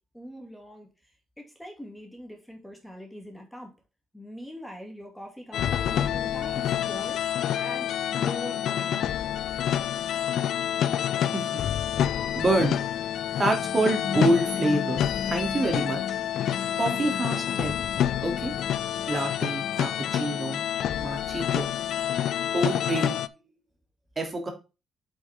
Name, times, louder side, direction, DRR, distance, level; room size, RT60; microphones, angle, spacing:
voice 1, 0.1-3.7 4.1-7.2 7.6-9.0, equal, 5° left, 2 dB, 2.7 m, -42 dB
sound 1, 5.5-23.3, left 10 dB, 75° left, 0.5 m, -28 dB
voice 2, 12.4-12.8 13.4-16.0 16.8-17.7 18.2-18.5 19.1-20.6 21.0-21.7 22.5-23.2 24.2-24.5, right 2 dB, 30° right, 3 dB, 3.0 m, -27 dB
sound 2, 13.3-20.9, left 6 dB, 45° left, 0.9 m, -39 dB
8.0 x 6.1 x 3.7 m, 0.28 s
cardioid pair, 90°, 0 cm